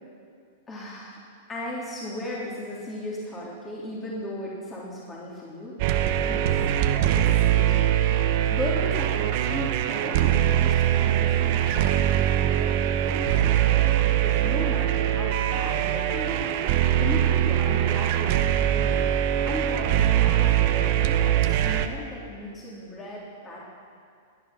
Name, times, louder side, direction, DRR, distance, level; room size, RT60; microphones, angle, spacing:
voice 1, 0.7-1.2 1.5-5.7 6.2-6.6 7.1-9.2 9.4-16.6 17.0-19.1 19.4-23.6, left 1 dB, 20° left, -5 dB, 3.2 m, -36 dB
sound 1, 5.8-21.9, right 11 dB, 55° right, 0.9 m, -22 dB
17.5 x 10.0 x 6.0 m, 2.3 s
hypercardioid pair, 120°, 0 cm